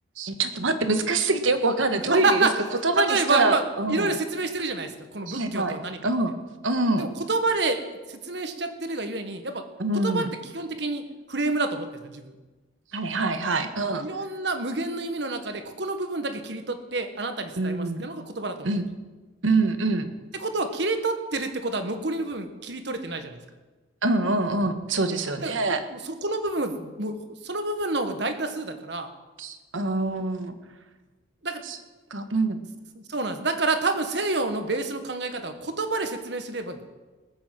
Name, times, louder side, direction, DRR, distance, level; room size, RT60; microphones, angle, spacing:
voice 1, 0.2-2.5 2.8-4.2 5.3-5.7 6.0-6.3 6.6-7.0 9.8-10.3 12.9-14.1 17.6-18.0 18.6-18.8 19.4-20.1 24.0-25.8 29.4-30.5 31.6-31.8 32.1-32.6, right 2 dB, 90° right, 8 dB, 1.4 m, -25 dB
voice 2, 2.1-3.6 3.9-6.1 7.0-7.8 8.1-9.6 10.0-11.0 11.3-12.3 14.0-18.7 20.4-23.4 25.4-25.5 25.9-27.2 27.4-29.1 31.4-31.6 32.9-36.8, right 3 dB, 60° right, 7 dB, 1.5 m, -28 dB
20.0 x 7.0 x 7.6 m, 1.2 s
head